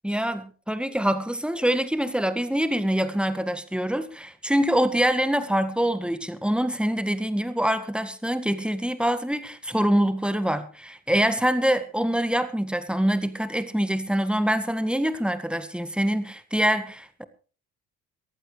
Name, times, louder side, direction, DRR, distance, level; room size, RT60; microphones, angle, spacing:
voice 1, 0.0-17.3, equal, ahead, 1.7 m, -25 dB
23.5 x 14.5 x 3.3 m
figure-of-eight pair, 45°, 47 cm